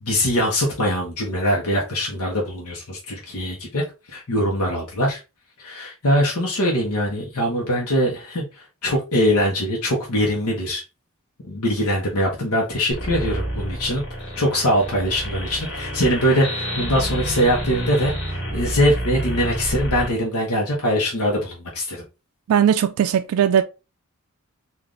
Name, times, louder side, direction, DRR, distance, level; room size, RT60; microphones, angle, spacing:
voice 1, 0.0-3.8 4.1-5.2 5.6-10.8 11.4-14.0 14.4-22.0, equal, 90° left, 0.9 m, -22 dB
sound 1, 12.9-20.1, equal, 50° left, 1.5 m, -29 dB
voice 2, 22.5-23.6, right 9 dB, 85° right, 0.3 m, -18 dB
3.8 x 2.5 x 3.1 m
head